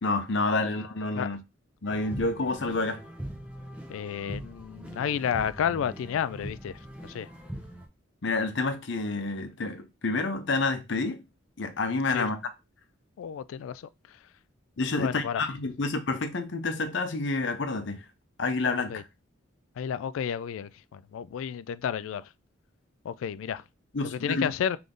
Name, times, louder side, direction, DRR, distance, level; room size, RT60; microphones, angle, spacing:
voice 1, 0.0-1.4 1.8-3.0 8.2-11.2 11.6-12.4 14.8-18.0 18.4-19.0 23.9-24.5, left 3 dB, 65° left, 0.7 m, -29 dB
sound 1, 1.8-7.9, equal, 5° right, 0.8 m, -41 dB
voice 2, 3.9-6.7 7.0-7.3 12.1-12.3 13.2-13.8 15.0-15.5 18.9-19.0 19.8-22.2 23.0-23.6 24.0-24.8, left 8 dB, 90° left, 0.3 m, -31 dB
3.6 x 3.4 x 3.8 m
head